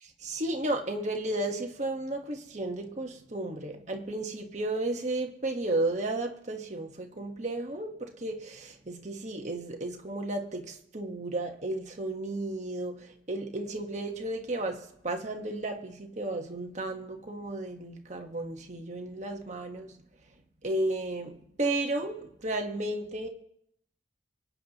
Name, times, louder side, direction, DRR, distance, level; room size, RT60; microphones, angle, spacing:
voice 1, 0.0-20.0 20.6-23.3, right 2 dB, 40° right, 1.4 m, -33 dB
28.0 x 9.5 x 3.0 m
head